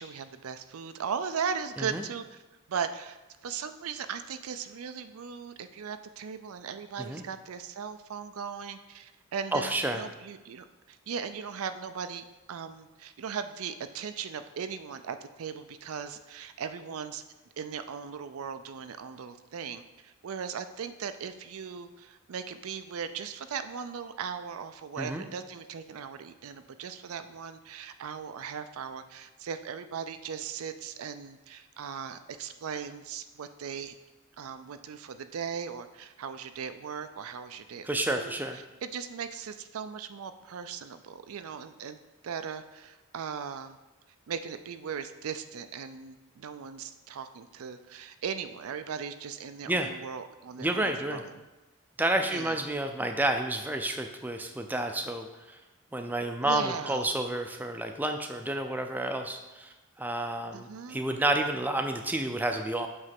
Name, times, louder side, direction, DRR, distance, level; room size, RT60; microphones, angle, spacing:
voice 1, 0.0-2.4 2.7-3.2 3.4-17.2 17.6-33.9 34.4-37.9 38.1-42.0 42.2-43.8 44.3-51.4 52.2-52.6 56.4-57.1 60.5-61.0, right 6 dB, 75° right, 10 dB, 0.4 m, -38 dB
voice 2, 9.5-10.0 25.0-25.2 37.9-38.6 49.7-49.9 50.6-51.2 52.0-55.6 55.9-62.9, right 1 dB, 10° right, 5 dB, 0.4 m, -30 dB
7.7 x 3.3 x 5.9 m, 1.1 s
head